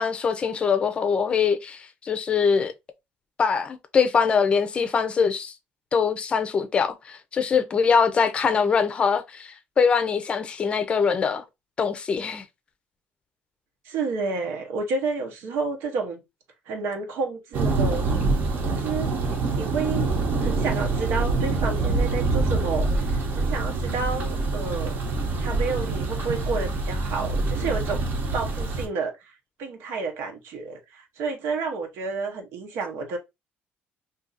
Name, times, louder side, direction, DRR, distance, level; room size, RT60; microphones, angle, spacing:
voice 1, 0.0-2.7 3.4-5.5 5.9-11.4 11.8-12.4, left 6 dB, 30° left, 0.5 m, -23 dB
voice 2, 13.8-16.2 16.7-18.1 18.7-19.1 19.5-20.1 20.4-25.0 25.4-28.0 28.3-29.3 29.6-33.2, right 4 dB, 85° right, 0.9 m, -30 dB
Thunder, 17.5-28.9, right 3 dB, 55° right, 0.9 m, -25 dB
2.7 x 2.5 x 3.9 m
cardioid pair, 160°, 4 cm